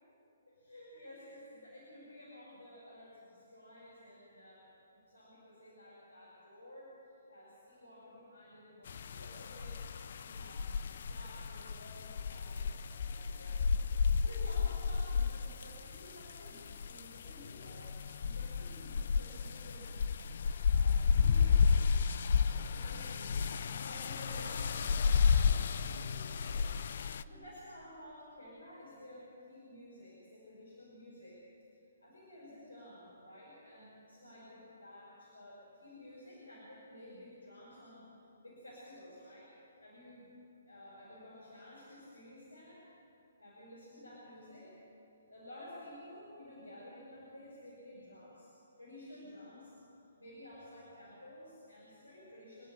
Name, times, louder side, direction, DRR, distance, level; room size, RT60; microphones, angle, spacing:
voice 1, 0.5-9.8 10.2-13.7 14.1-20.0 20.6-21.6 22.3-26.7 27.0-31.7 32.0-38.1 38.4-39.5 39.8-40.3 40.6-42.9 43.4-44.8 45.3-48.5 48.8-49.8 50.2-52.7, left 1 dB, 85° left, -6 dB, 6.4 m, -53 dB
sound 1, 8.9-27.2, left 6 dB, 55° left, 0.6 m, -32 dB
27.0 x 10.0 x 9.9 m, 2.9 s
figure-of-eight pair, 130°, 0 cm